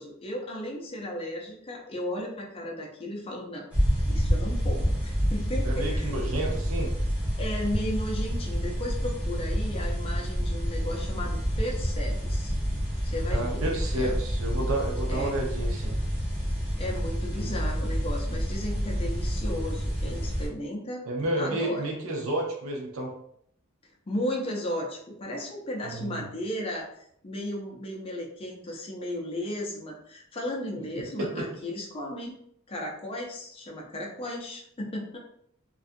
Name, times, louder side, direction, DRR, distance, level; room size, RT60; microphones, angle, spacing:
voice 1, 0.0-3.7 4.1-6.1 7.4-12.5 13.0-13.7 14.0-14.2 15.1-15.4 16.8-21.1 21.4-21.9 24.1-26.9 27.2-32.4 32.7-35.2, left 1 dB, 25° left, -1 dB, 0.5 m, -35 dB
sound 1, 3.7-20.5, equal, 5° right, 0.9 m, -28 dB
voice 2, 5.6-6.9 13.3-16.0 21.1-23.1 25.9-26.2 31.2-31.5, right 1 dB, 75° right, 0 dB, 0.6 m, -31 dB
2.5 x 2.3 x 2.5 m, 0.68 s
head